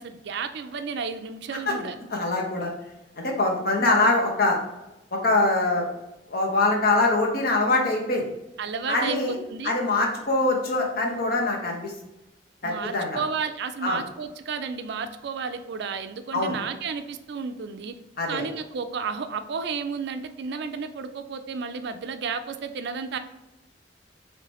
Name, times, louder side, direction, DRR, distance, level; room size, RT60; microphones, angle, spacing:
voice 1, 0.0-2.0 3.8-4.1 8.6-9.8 12.6-17.9 18.3-23.2, right 5 dB, 65° right, 9 dB, 0.4 m, -32 dB
voice 2, 2.1-2.7 3.2-4.6 5.1-5.9 6.3-8.3 8.9-9.4 9.6-11.9 12.6-13.2 13.8-14.0 16.3-16.6 18.2-18.4, left 2 dB, 55° left, 0 dB, 1.0 m, -23 dB
4.8 x 3.3 x 2.9 m, 0.96 s
head